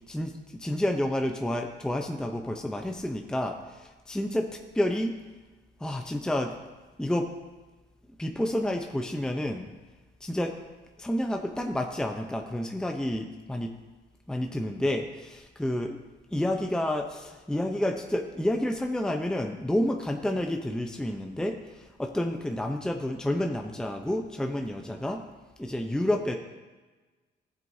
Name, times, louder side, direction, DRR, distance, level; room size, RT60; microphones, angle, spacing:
voice 1, 0.1-5.2 5.8-6.5 7.0-7.3 8.2-9.7 10.2-10.6 11.0-13.7 14.3-16.0 16.3-25.2 25.6-26.4, left 1 dB, 5° left, 4 dB, 0.7 m, -30 dB
14.5 x 7.7 x 2.7 m, 1.3 s
cardioid pair, 90°, 20 cm